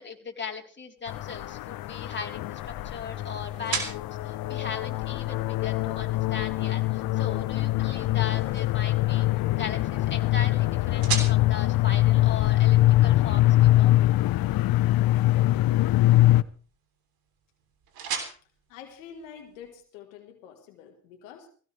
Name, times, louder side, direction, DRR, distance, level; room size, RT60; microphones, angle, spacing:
voice 1, 0.0-9.3 9.6-14.0, left 5 dB, 30° left, 1 dB, 3.8 m, -38 dB
sound 1, 1.0-19.8, right 6 dB, 70° right, 3.3 m, -41 dB
sound 2, 1.1-16.4, left 16 dB, 65° left, 0.7 m, -23 dB
voice 2, 18.4-21.5, left 7 dB, 90° left, 4 dB, 1.7 m, -47 dB
18.0 x 16.5 x 3.3 m, 0.40 s
hypercardioid pair, 50°, 38 cm